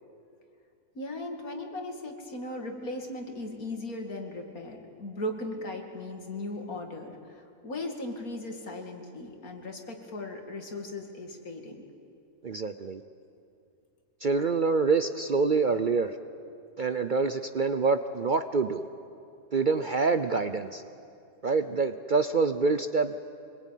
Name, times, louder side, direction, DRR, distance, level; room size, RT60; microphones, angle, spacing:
voice 1, 0.9-11.8, left 1 dB, 75° left, 3 dB, 2.8 m, -37 dB
voice 2, 12.4-13.0 14.2-16.1 16.8-18.9 19.5-20.8 21.4-23.1, right 4 dB, 45° right, 9 dB, 0.7 m, -26 dB
25.0 x 21.5 x 9.2 m, 2.5 s
omnidirectional pair, 1.5 m